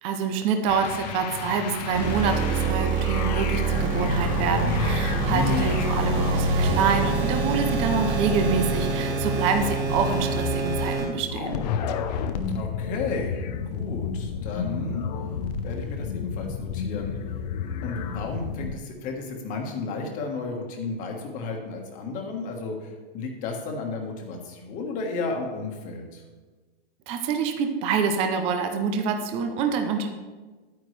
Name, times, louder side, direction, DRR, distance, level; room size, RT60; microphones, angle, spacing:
voice 1, 0.0-11.6 27.1-30.1, right 5 dB, 20° right, 5 dB, 0.5 m, -26 dB
sound 1, 0.7-18.8, left 7 dB, 40° left, 0.6 m, -33 dB
sound 2, 1.9-11.0, right 3 dB, 35° right, 2.8 m, -25 dB
voice 2, 5.2-5.7 12.5-13.4 13.7-15.0 15.6-17.2 17.8-26.2, left 4 dB, 25° left, 2 dB, 1.4 m, -33 dB
11.0 x 9.3 x 3.2 m, 1.3 s
hypercardioid pair, 160°, 32 cm